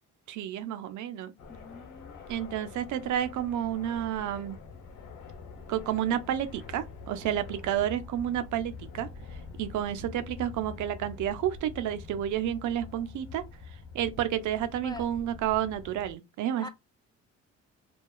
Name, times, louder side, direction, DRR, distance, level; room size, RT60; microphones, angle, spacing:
voice 1, 0.3-1.3 2.3-4.6 5.7-9.1 9.6-13.4 13.9-16.7, right 11 dB, 75° right, 0.5 m, -30 dB
sound 1, 1.4-16.1, left 4 dB, 80° left, 0.9 m, -45 dB
voice 2, 1.5-2.2 14.8-15.1 16.6-16.7, left 2 dB, 15° left, 0.4 m, -43 dB
2.8 x 2.3 x 2.2 m
cardioid pair, 90°, 30 cm